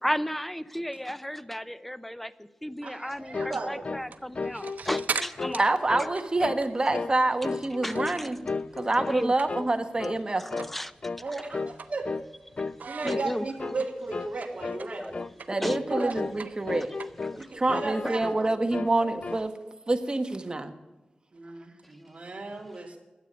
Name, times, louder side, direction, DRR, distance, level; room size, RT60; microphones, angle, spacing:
voice 1, 0.0-5.6 7.8-8.3 9.1-9.3 10.4-10.9 13.0-13.5 14.8-15.3 15.6-16.0 17.3-17.6 18.0-18.2, equal, 5° left, 14 dB, 0.7 m, -34 dB
voice 2, 2.8-3.8 11.2-12.1 12.9-15.2 15.9-16.2 16.4-16.5 17.3-18.5 21.3-23.0, right 3 dB, 50° right, 1 dB, 2.8 m, -35 dB
sound 1, 3.3-3.6 3.8-4.1 4.4-5.6 5.9-6.1 6.4-6.7 6.9-7.2 7.4-8.2 8.5-9.2 9.5-9.7 10.0-10.2 10.5-10.7 11.0-11.2 11.5-11.8 12.1-12.3 12.6-12.8 13.1-13.3 13.6-13.8 14.1-14.4 14.6-14.8 15.1-15.3 15.6-16.4 16.7-17.4 17.7-18.4 18.7-19.5, left 4 dB, 45° left, 0.3 m, -34 dB
sound 2, 3.9-8.4 8.7-9.9 10.2-10.3 10.6-10.8 11.2-12.4 12.8-17.6, right 5 dB, 85° right, 0.9 m, -39 dB
voice 3, 5.6-10.7 15.5-16.9 17.5-19.5 19.9-20.7, right 2 dB, 30° right, 7 dB, 1.3 m, -27 dB
13.0 x 8.4 x 9.5 m, 1.2 s
wide cardioid pair, 90°, 3 cm